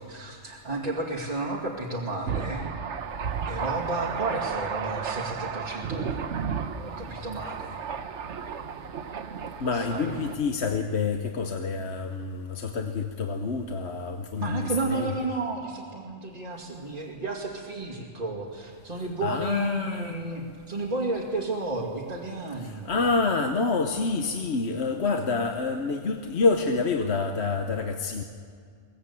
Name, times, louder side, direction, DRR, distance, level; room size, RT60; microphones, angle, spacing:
voice 1, 0.0-2.7 3.5-6.5 6.8-7.8 9.7-10.2 14.4-22.9, right 2 dB, 30° right, -2 dB, 2.5 m, -32 dB
Thunder, 2.3-10.4, right 6 dB, 65° right, 1.2 m, -33 dB
voice 2, 9.6-15.1 19.2-20.2 22.6-28.2, left 4 dB, 60° left, 5 dB, 1.3 m, -27 dB
22.5 x 18.5 x 8.4 m, 2.2 s
omnidirectional pair, 1.3 m